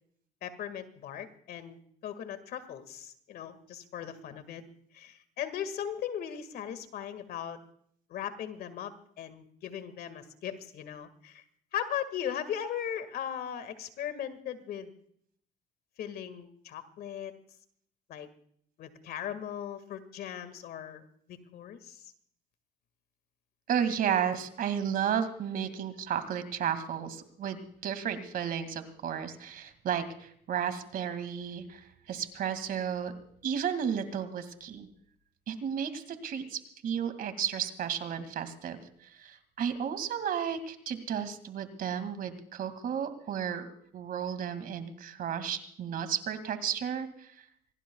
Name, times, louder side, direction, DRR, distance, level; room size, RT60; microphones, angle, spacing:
voice 1, 0.4-4.6 4.9-7.6 8.1-11.4 11.7-14.9 16.0-17.3 18.1-18.3 18.8-22.0, left 9 dB, 65° left, 11 dB, 1.9 m, -38 dB
voice 2, 23.7-33.1 33.4-34.9 35.5-43.7 43.9-47.4, right 8 dB, 60° right, 10 dB, 2.3 m, -33 dB
25.5 x 18.0 x 2.3 m, 0.64 s
cardioid pair, 110°, 17 cm